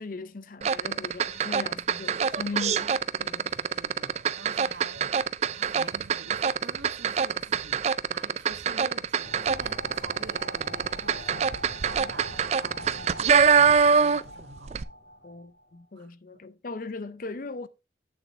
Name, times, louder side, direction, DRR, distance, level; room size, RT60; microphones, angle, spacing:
voice 1, 0.0-3.5 15.2-17.7, left 3 dB, 45° left, 0.5 m, -38 dB
sound 1, 0.6-14.4 14.7-14.8, right 6 dB, 35° right, 0.3 m, -24 dB
voice 2, 3.5-5.1 5.5-14.7 15.9-16.4, right 3 dB, 70° right, 1.2 m, -47 dB
sound 2, 9.2-15.6, left 1 dB, 75° left, 2.9 m, -43 dB
8.5 x 7.3 x 3.1 m
head